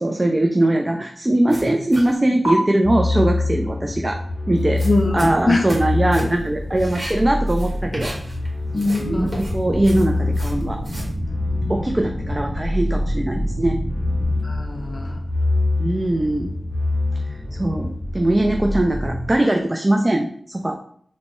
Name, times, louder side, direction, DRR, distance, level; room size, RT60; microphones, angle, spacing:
voice 1, 0.0-4.2 4.5-4.8 5.1-8.1 8.7-10.8 11.7-13.8 15.8-16.6 17.5-20.8, right 1 dB, 30° right, 3 dB, 0.3 m, -21 dB
sound 1, 1.5-2.1 2.4-2.5 4.6-5.9 6.1-6.5 6.7-8.5 8.7-11.1, equal, 50° right, 1.1 m, -33 dB
sound 2, 2.8-19.3, left 2 dB, 20° left, 0.7 m, -25 dB
voice 2, 4.8-5.6 8.7-9.3 14.4-15.2, left 2 dB, 50° left, 2 dB, 0.4 m, -22 dB
sound 3, 9.4-14.4, equal, 75° right, 0.9 m, -31 dB
3.1 x 2.1 x 4.2 m, 0.62 s
wide cardioid pair, 55°, 0 cm